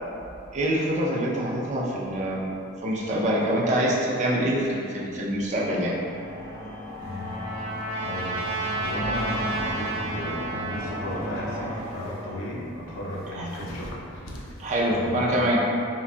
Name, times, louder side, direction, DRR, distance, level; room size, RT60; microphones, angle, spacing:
voice 1, 0.5-2.5 2.8-5.9 13.3-13.5 14.6-15.6, equal, 35° right, -4 dB, 0.4 m, -25 dB
sound 1, 5.8-12.8, equal, 15° right, 0.8 m, -36 dB
Trumpet, 6.4-11.1, right 2 dB, 85° right, 0.8 m, -32 dB
voice 2, 7.0-7.4 7.9-8.4 8.7-14.4 14.9-15.3, left 1 dB, 75° left, -4 dB, 0.6 m, -34 dB
3.9 x 2.2 x 2.4 m, 2.7 s
head